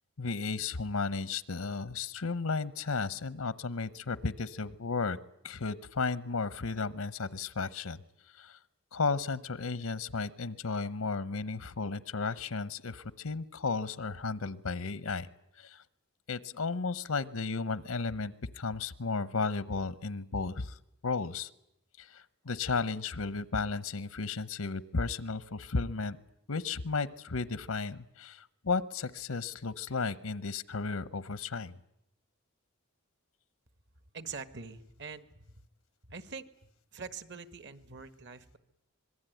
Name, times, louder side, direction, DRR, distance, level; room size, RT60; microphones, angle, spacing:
voice 1, 0.2-5.2 5.4-8.0 8.3-8.6 8.9-15.3 15.5-15.8 16.3-21.5 22.0-26.2 26.5-31.7, left 4 dB, 90° left, 16 dB, 0.9 m, -34 dB
voice 2, 34.1-35.6 36.1-36.5 36.9-38.6, right 5 dB, 55° right, 13 dB, 1.4 m, -44 dB
25.5 x 21.5 x 9.2 m, 0.80 s
head